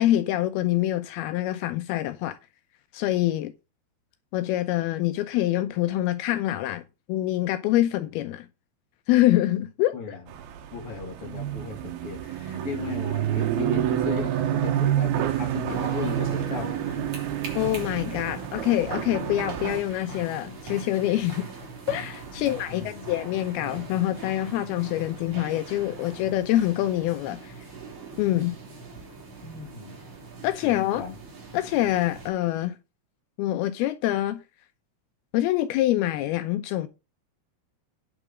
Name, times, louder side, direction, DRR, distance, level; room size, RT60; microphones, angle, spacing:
voice 1, 0.0-2.4 2.9-3.5 4.3-6.8 7.1-8.5 9.1-10.2 17.6-21.5 21.9-27.5 28.2-28.6 30.4-31.0 31.5-32.7 33.4-34.4 35.3-36.9, left 14 dB, 80° left, 2.6 m, -25 dB
sound 1, 10.3-19.8, right 11 dB, 75° right, 3.0 m, -28 dB
voice 2, 10.7-17.0 22.4-23.1 29.4-30.0 30.6-31.2, left 5 dB, 35° left, 3.5 m, -36 dB
sound 2, 15.6-32.3, right 3 dB, 50° right, 4.9 m, -40 dB
9.3 x 6.8 x 5.1 m
omnidirectional pair, 4.5 m